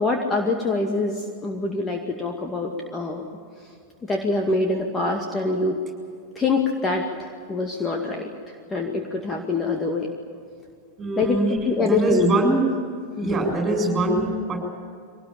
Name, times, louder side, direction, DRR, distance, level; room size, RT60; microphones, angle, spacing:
voice 1, 0.0-3.2 4.1-5.8 6.4-10.1 11.2-12.3 13.2-13.4, left 3 dB, 15° left, 2 dB, 2.2 m, -25 dB
voice 2, 11.0-11.6 11.9-12.7 13.2-14.6, right 2 dB, 20° right, 2 dB, 7.3 m, -22 dB
24.0 x 18.5 x 8.7 m, 2.3 s
figure-of-eight pair, 90°, 0 cm